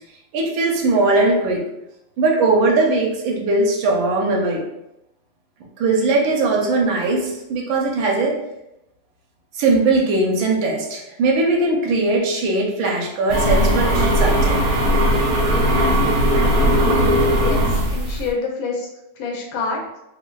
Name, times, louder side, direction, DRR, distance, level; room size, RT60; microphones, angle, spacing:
voice 1, 0.3-1.6 2.2-4.6 5.8-8.4 9.5-14.6, right 2 dB, 85° right, -1 dB, 1.4 m, -19 dB
sound 1, 13.3-18.3, equal, 65° right, 1.0 m, -18 dB
voice 2, 17.2-18.9 19.2-19.8, left 4 dB, 90° left, 0 dB, 1.5 m, -27 dB
4.2 x 2.1 x 2.2 m, 0.87 s
omnidirectional pair, 2.1 m